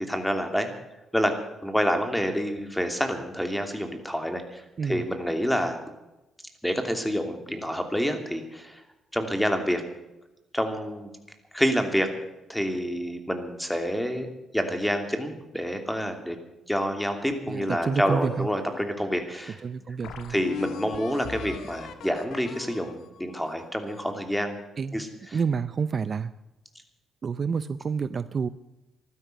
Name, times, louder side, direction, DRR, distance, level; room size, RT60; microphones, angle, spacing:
voice 1, 0.1-0.7 1.1-1.4 1.6-5.8 6.6-8.8 9.1-9.8 10.5-11.1 11.5-12.1 12.5-14.3 14.5-16.4 16.7-19.6 20.3-24.6 24.9-25.4, equal, 5° left, 6 dB, 2.8 m, -28 dB
sound 1, 17.3-18.9 19.4-19.5 20.0-24.2, left 8 dB, 75° left, 1.6 m, -40 dB
voice 2, 17.5-18.5 19.6-20.3 24.8-25.0 25.3-26.3 27.2-28.5, right 5 dB, 45° right, 15 dB, 0.5 m, -28 dB
15.5 x 12.5 x 6.8 m, 0.98 s
cardioid pair, 90°, 0 cm